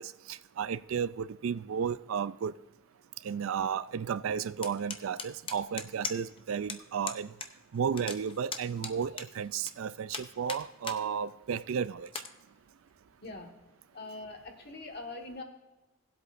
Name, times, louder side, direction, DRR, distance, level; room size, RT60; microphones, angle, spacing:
voice 1, 0.0-2.5 3.2-7.3 7.7-12.1, right 7 dB, 80° right, 0.4 m, -33 dB
sound 1, 4.6-6.4 6.7-6.8 7.1-7.5 7.8-9.7 10.1-11.0 11.4-11.5 12.1-12.3, left 5 dB, 25° left, 0.6 m, -38 dB
voice 2, 13.9-15.4, left 2 dB, 50° left, 1.6 m, -42 dB
18.5 x 7.9 x 2.6 m
head